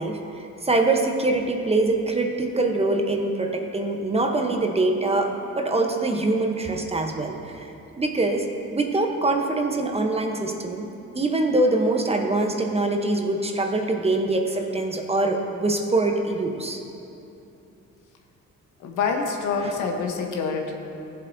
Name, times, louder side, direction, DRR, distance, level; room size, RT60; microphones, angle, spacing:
voice 1, 0.0-8.5 8.7-10.9 11.1-16.8 19.6-19.7, right 2 dB, 20° right, 3 dB, 0.9 m, -24 dB
voice 2, 18.8-20.7, left 5 dB, 80° left, 2 dB, 1.1 m, -26 dB
15.5 x 7.4 x 2.7 m, 2.8 s
cardioid pair, 90°, 30 cm